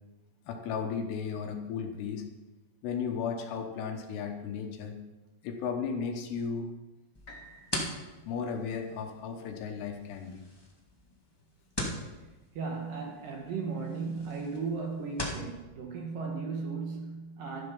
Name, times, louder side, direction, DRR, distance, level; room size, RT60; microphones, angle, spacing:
voice 1, 0.5-2.3 2.8-5.0 5.4-6.7 8.3-10.4, left 6 dB, 75° left, 3.0 m, -35 dB
sound 1, 7.1-15.5, left 1 dB, 20° left, 0.6 m, -41 dB
sound 2, 7.3-11.2 11.8-11.9, equal, 55° left, 0.8 m, -57 dB
voice 2, 12.5-17.7, right 4 dB, 65° right, 2.5 m, -36 dB
13.0 x 11.5 x 5.5 m
omnidirectional pair, 5.1 m